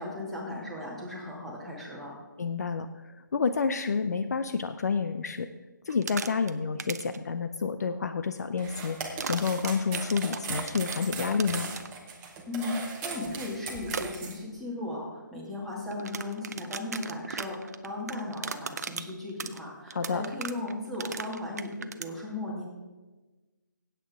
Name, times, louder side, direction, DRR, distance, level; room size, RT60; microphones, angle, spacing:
voice 1, 0.0-2.2 12.5-22.6, left 2 dB, ahead, -6 dB, 2.1 m, -36 dB
voice 2, 2.4-5.5 5.9-11.7 19.9-20.2, left 5 dB, 55° left, 10 dB, 0.5 m, -29 dB
sound 1, 5.9-6.5 6.8-7.2 9.2-11.9 13.9-14.0 15.9-22.1, right 5 dB, 55° right, 0.6 m, -37 dB
sound 2, 8.6-14.4, right 5 dB, 15° right, 1.2 m, -38 dB
16.0 x 8.3 x 3.6 m, 1.2 s
figure-of-eight pair, 150°, 11 cm